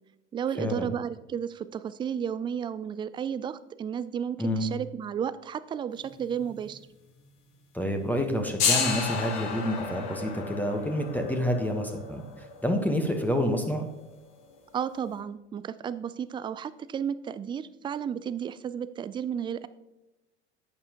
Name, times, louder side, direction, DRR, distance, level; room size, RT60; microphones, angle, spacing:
voice 1, 0.3-6.8 14.7-19.7, right 8 dB, 15° right, 15 dB, 0.3 m, -33 dB
voice 2, 4.4-4.7 7.7-13.9, equal, 5° left, 4 dB, 1.2 m, -28 dB
sound 1, 6.0-6.8 7.1-7.2 8.0-14.7, left 6 dB, 50° left, 2.1 m, -33 dB
11.0 x 8.7 x 3.0 m, 0.98 s
figure-of-eight pair, 75°, 35 cm